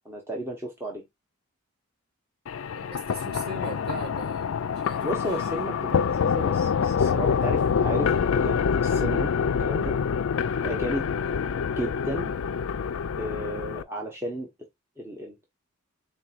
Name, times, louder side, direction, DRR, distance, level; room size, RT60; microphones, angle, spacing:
voice 1, 0.0-1.0 5.0-10.0 10.6-11.1 11.8-12.3 13.2-14.5 15.0-15.4, equal, 10° right, 0.8 m, -33 dB
sound 1, 2.5-13.8, left 6 dB, 60° left, 0.4 m, -26 dB
voice 2, 2.7-5.1 11.2-11.4, right 2 dB, 45° right, 1.5 m, -39 dB
4.3 x 4.1 x 2.4 m
head